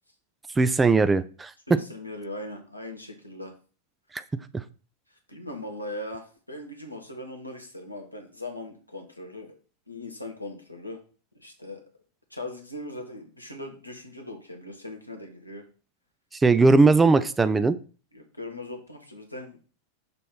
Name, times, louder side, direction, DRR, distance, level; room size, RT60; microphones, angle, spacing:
voice 1, 0.6-1.8 4.1-4.2 4.5-4.6 16.3-17.8, right 3 dB, 10° right, 12 dB, 0.4 m, -19 dB
voice 2, 1.7-3.5 5.1-9.6 9.9-11.0 11.3-11.8 12.3-15.6 18.1-19.6, left 1 dB, 90° left, 2 dB, 1.3 m, -39 dB
6.7 x 3.1 x 5.6 m, 0.37 s
figure-of-eight pair, 90°, 0 cm